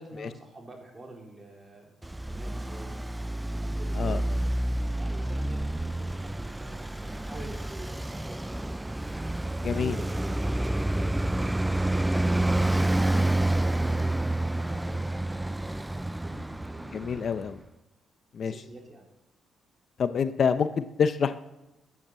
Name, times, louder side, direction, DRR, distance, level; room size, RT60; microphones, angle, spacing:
voice 1, 0.0-2.0 2.3-3.1 3.5-4.5 5.0-8.9 9.7-12.0 12.4-17.2 18.4-19.1, right 2 dB, 25° right, 1 dB, 4.0 m, -46 dB
Traffic noise roadway noise, 2.0-17.5, right 1 dB, 10° right, 0.4 m, -29 dB
voice 2, 9.6-10.0 16.9-17.6 18.3-18.5 20.0-21.4, left 6 dB, 55° left, 11 dB, 0.7 m, -26 dB
13.5 x 9.6 x 7.6 m, 1.0 s
cardioid pair, 90°, 0 cm